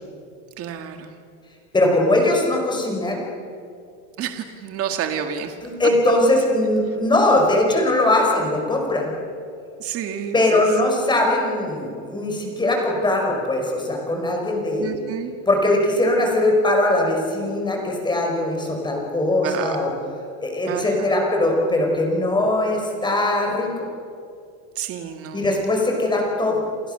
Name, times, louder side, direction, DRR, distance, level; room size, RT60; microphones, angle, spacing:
voice 1, 0.6-1.1 4.2-5.6 9.8-10.7 14.8-15.3 19.4-19.8 20.7-21.2 24.8-25.4, right 8 dB, 30° right, 6 dB, 1.9 m, -29 dB
voice 2, 1.7-3.2 5.6-9.1 10.3-14.9 15.5-19.9 20.4-23.7 25.3-26.6, left 1 dB, 10° left, 1 dB, 5.4 m, -20 dB
30.0 x 27.0 x 6.8 m, 2.5 s
cardioid pair, 165°, 44 cm